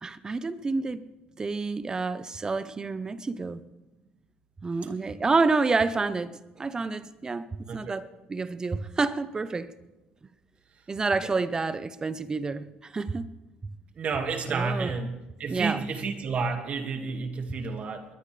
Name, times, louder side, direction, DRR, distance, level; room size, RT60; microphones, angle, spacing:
voice 1, 0.0-1.0 1.4-3.6 4.6-9.7 10.9-13.3 14.5-14.9 15.5-15.9, right 3 dB, 25° right, 0.9 m, -29 dB
voice 2, 14.0-15.1 15.4-18.1, right 4 dB, 50° right, 2.2 m, -30 dB
21.0 x 20.0 x 3.5 m
cardioid pair, 105°, 3 cm